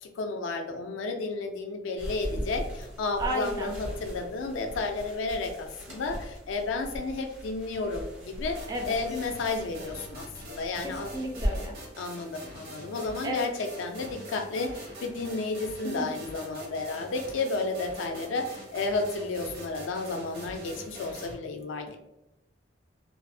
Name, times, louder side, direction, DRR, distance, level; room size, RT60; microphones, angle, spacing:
voice 1, 0.0-11.1 12.0-22.0, left 3 dB, 75° left, 5 dB, 0.3 m, -32 dB
sound 1, 2.0-11.5, equal, 85° right, 0.9 m, -39 dB
voice 2, 3.2-3.7 8.7-9.0 10.8-11.8 13.2-13.5 15.8-16.1, right 1 dB, 20° right, 1 dB, 0.3 m, -33 dB
sound 2, 8.5-21.3, right 1 dB, 55° right, 0.7 m, -44 dB
2.5 x 2.0 x 2.5 m, 0.91 s
head